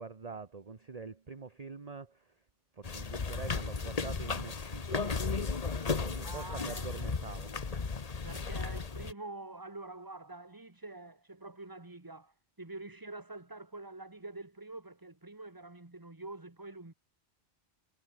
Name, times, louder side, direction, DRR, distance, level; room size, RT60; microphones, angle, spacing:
voice 1, 0.0-2.3 2.7-5.6 6.0-7.5, right 4 dB, 35° right, 1.3 m, -45 dB
sound 1, 2.8-9.1, left 4 dB, 35° left, 1.2 m, -35 dB
voice 2, 6.2-7.0 8.2-16.9, right 2 dB, 20° right, 1.9 m, -46 dB
omnidirectional pair, 1.1 m